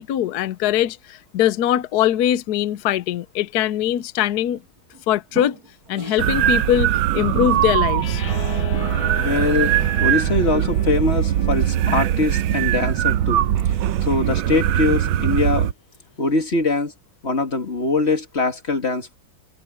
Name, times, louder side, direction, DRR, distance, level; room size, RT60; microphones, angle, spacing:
voice 1, 0.0-4.6 5.1-5.6 5.9-8.2, left 11 dB, 65° left, 1.0 m, -21 dB
sound 1, 3.8-4.1 4.6-5.0 5.3-6.7, right 2 dB, 45° right, 6.1 m, -39 dB
sound 2, 6.2-15.7, right 11 dB, 80° right, 1.5 m, -21 dB
sound 3, 8.0-14.2, left 6 dB, 90° left, 3.0 m, -37 dB
voice 2, 9.2-13.5 14.0-15.7 16.2-16.9 17.2-19.2, left 3 dB, 30° left, 2.6 m, -22 dB
open air
omnidirectional pair, 2.2 m